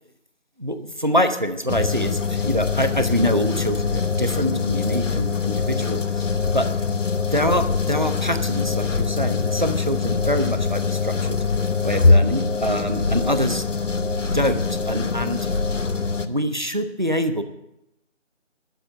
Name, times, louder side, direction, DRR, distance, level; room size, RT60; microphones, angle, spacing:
voice 1, 0.6-6.3 6.5-6.7 7.3-11.4 11.8-13.6 14.3-15.5 16.3-17.4, equal, 40° right, 9 dB, 1.0 m, -25 dB
sound 1, 1.7-16.3, left 4 dB, 75° left, 1.1 m, -23 dB
12.5 x 8.1 x 7.8 m, 0.86 s
figure-of-eight pair, 180°, 37 cm